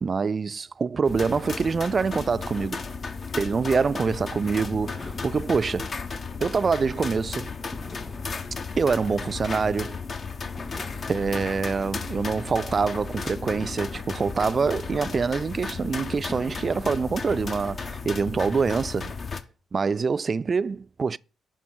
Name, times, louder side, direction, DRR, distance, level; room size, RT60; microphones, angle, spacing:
voice 1, 0.0-2.9 3.4-5.9 6.4-7.5 8.8-10.0 11.1-19.1 19.7-21.2, right 5 dB, 45° right, 0.3 m, -25 dB
sound 1, 1.0-19.4, left 4 dB, 50° left, 0.9 m, -34 dB
sound 2, 4.9-7.1 7.7-10.0 10.6-12.8 13.4-15.7 16.3-18.6, left 1 dB, 20° left, 1.9 m, -47 dB
11.0 x 3.9 x 6.2 m
supercardioid pair, 50°, 0 cm